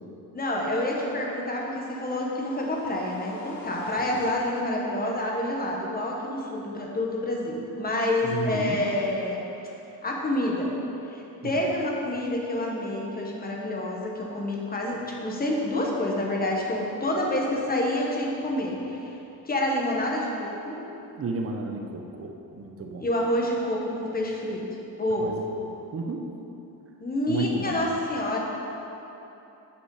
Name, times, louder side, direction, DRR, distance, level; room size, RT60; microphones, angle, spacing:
voice 1, 0.3-9.4 10.0-10.7 11.1-19.0 19.4-20.8 23.0-24.6 25.0-25.3 27.0-28.4, left 1 dB, 25° left, -1 dB, 1.3 m, -28 dB
sound 1, 1.6-4.8, left 2 dB, 50° left, 1.6 m, -42 dB
voice 2, 8.2-8.8 11.4-11.5 21.1-23.0 25.2-26.3 27.3-27.8, right 3 dB, 35° right, 3 dB, 0.8 m, -32 dB
9.9 x 5.4 x 4.8 m, 3.0 s
cardioid pair, 135°, 37 cm